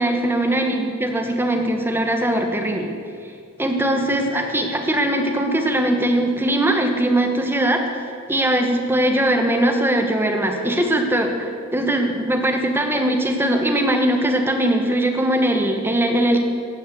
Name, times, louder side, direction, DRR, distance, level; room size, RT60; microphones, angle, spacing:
voice 1, 0.0-2.9 3.6-7.9 8.3-16.4, right 1 dB, 10° right, 3 dB, 1.2 m, -20 dB
15.5 x 7.8 x 7.9 m, 2.3 s
head